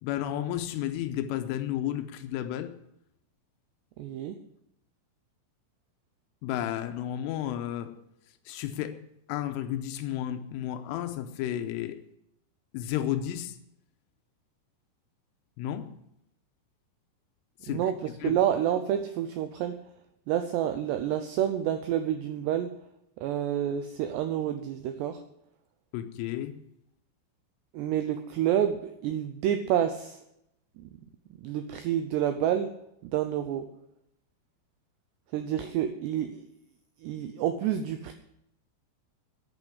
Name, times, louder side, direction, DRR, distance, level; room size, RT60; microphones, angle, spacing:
voice 1, 0.0-2.8 6.4-7.9 8.5-12.0 12.7-13.6 15.6-16.0 17.6-17.8 18.2-18.4 25.9-26.6, left 11 dB, 90° left, 8 dB, 3.3 m, -32 dB
voice 2, 4.0-4.4 17.7-17.9 18.2-19.8 20.3-22.7 23.2-25.2 27.7-30.2 30.8-30.9 31.4-32.7 33.0-33.7 35.3-36.4 37.0-38.1, right 10 dB, 85° right, 8 dB, 2.4 m, -28 dB
10.5 x 9.0 x 9.7 m, 0.80 s
omnidirectional pair, 5.8 m